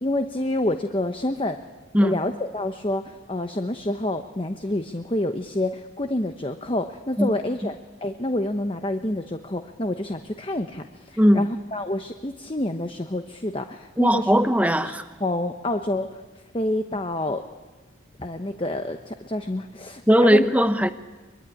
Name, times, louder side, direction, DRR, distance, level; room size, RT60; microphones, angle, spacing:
voice 1, 0.0-1.6 2.0-7.7 8.0-14.4 14.8-14.9 15.2-16.2 16.5-17.4 18.2-20.5, left 1 dB, 25° left, 0.9 m, -28 dB
voice 2, 11.2-11.5 14.0-15.0 20.1-20.9, equal, 5° right, 1.0 m, -18 dB
24.0 x 23.0 x 9.9 m
head